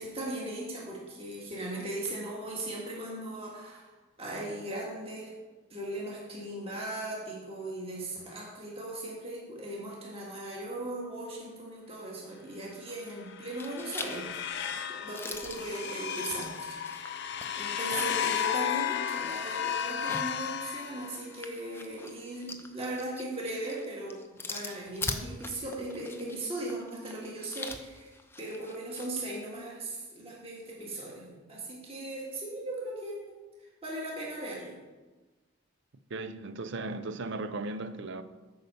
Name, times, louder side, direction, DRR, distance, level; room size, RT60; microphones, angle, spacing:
voice 1, 0.0-3.9 4.2-5.3 5.7-24.2 24.5-33.2 33.8-34.7, right 1 dB, 25° right, 1.8 m, -38 dB
sound 1, 12.9-13.3 13.6-18.3 18.7-18.8 19.8-29.1, left 3 dB, 10° left, 0.5 m, -42 dB
sound 2, 13.2-21.4, left 9 dB, 55° left, 0.6 m, -34 dB
voice 2, 36.1-38.2, right 2 dB, 55° right, 0.5 m, -36 dB
7.9 x 5.5 x 6.9 m
head